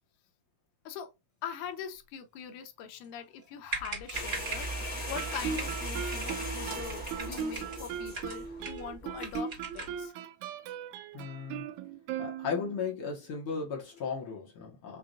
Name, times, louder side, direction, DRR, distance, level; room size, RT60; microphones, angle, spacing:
voice 1, 1.4-10.1, left 8 dB, 80° left, 2.1 m, -42 dB
sound 1, 3.4-3.5 3.7-4.7 5.2-5.8 6.1-6.5 6.9-7.8 8.1-8.9 9.2-10.0, right 4 dB, 30° right, 1.4 m, -40 dB
sound 2, 4.1-9.4, right 1 dB, 30° left, 0.7 m, -38 dB
Guitar, 5.1-12.9, right 7 dB, 85° right, 1.7 m, -38 dB
voice 2, 11.1-11.6 12.2-15.0, left 6 dB, 55° left, 1.6 m, -36 dB
5.6 x 2.5 x 2.5 m
omnidirectional pair, 3.7 m